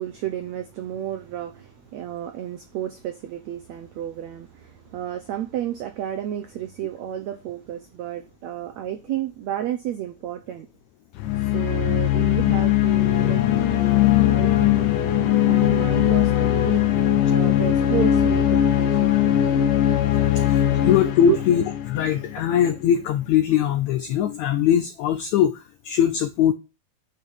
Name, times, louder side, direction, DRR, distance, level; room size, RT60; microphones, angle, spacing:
voice 1, 0.0-10.7 11.4-13.4 13.7-14.9 15.4-16.9 17.3-19.7 20.3-20.4 21.2-21.4, right 11 dB, 85° right, 1.5 m, -31 dB
sound 1, 11.1-22.7, left 12 dB, 65° left, 2.5 m, -20 dB
voice 2, 20.3-26.5, left 9 dB, 85° left, 1.6 m, -21 dB
9.9 x 5.8 x 7.3 m
omnidirectional pair, 4.4 m